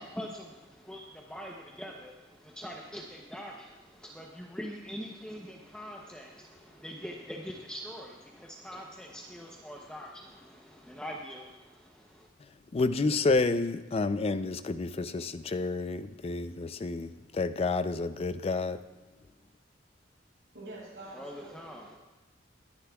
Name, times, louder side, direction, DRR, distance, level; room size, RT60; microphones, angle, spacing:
voice 1, 0.0-12.3 21.0-22.0, equal, 5° left, 0.7 m, -43 dB
voice 2, 12.7-18.8, left 3 dB, 30° left, 0.4 m, -29 dB
voice 3, 20.5-21.6, right 2 dB, 75° right, 4.6 m, -45 dB
21.0 x 10.5 x 2.3 m
head